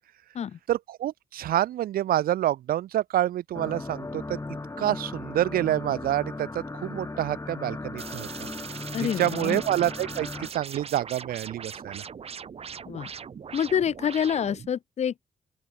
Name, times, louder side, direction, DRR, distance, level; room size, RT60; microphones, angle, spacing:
voice 1, 0.7-4.4 4.8-8.3 9.0-12.0, right 12 dB, 80° right, 0.5 m, -27 dB
sound 1, 3.5-10.5, left 2 dB, 20° left, 3.7 m, -37 dB
sound 2, 8.0-14.7, right 7 dB, 45° right, 0.7 m, -40 dB
voice 2, 8.9-9.6 12.9-13.1 13.5-15.3, left 8 dB, 50° left, 0.5 m, -27 dB
open air
cardioid pair, 100°, 15 cm